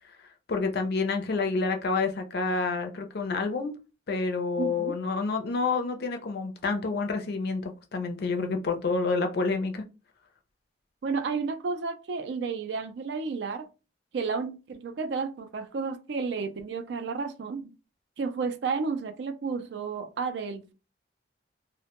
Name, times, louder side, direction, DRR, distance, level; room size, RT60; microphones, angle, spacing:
voice 1, 0.5-3.7 4.1-9.8, left 4 dB, 55° left, 0.4 m, -28 dB
voice 2, 4.6-4.9 11.0-13.7 14.1-17.8 18.2-20.7, right 4 dB, 65° right, 0.3 m, -32 dB
2.1 x 2.1 x 2.9 m
head